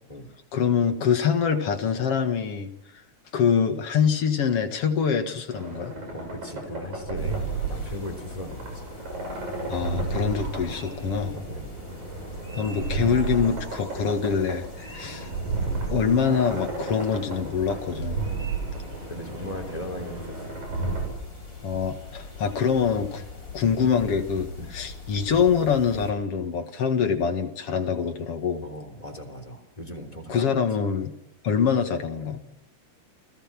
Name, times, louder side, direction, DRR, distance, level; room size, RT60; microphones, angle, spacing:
voice 1, 0.5-2.7 3.3-5.9 9.7-11.3 12.6-15.3 15.9-18.2 21.6-23.2 23.5-28.7 30.3-31.1 31.4-32.4, left 6 dB, 55° left, 6 dB, 2.5 m, -25 dB
sound 1, 5.5-21.1, right 4 dB, 70° right, 8.7 m, -33 dB
voice 2, 6.1-8.8 11.2-11.7 15.0-15.2 19.1-20.6 24.6-24.7 28.6-30.5, left 1 dB, 10° left, 6 dB, 3.2 m, -38 dB
sound 2, 7.1-26.1, left 4 dB, 35° left, 7.7 m, -42 dB
29.5 x 17.5 x 6.1 m, 0.80 s
omnidirectional pair, 3.5 m